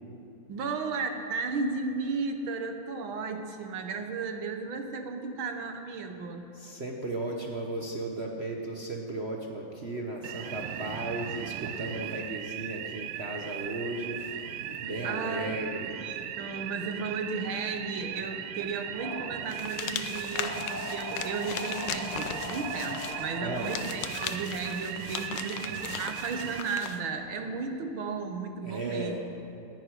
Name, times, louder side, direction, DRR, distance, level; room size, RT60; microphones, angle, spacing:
voice 1, 0.5-6.5 15.0-29.2, right 4 dB, 70° right, 6 dB, 1.8 m, -34 dB
voice 2, 6.5-15.9 23.4-23.7 25.3-25.5 28.6-29.2, right 2 dB, 45° right, 0 dB, 0.9 m, -35 dB
sound 1, 10.2-26.6, right 10 dB, 85° right, 1.6 m, -38 dB
sound 2, 18.7-19.4 20.3-23.8, left 1 dB, 80° left, 3.5 m, -40 dB
sound 3, 19.5-27.0, left 8 dB, 65° left, 1.2 m, -38 dB
11.0 x 10.5 x 9.7 m, 2.8 s
omnidirectional pair, 2.4 m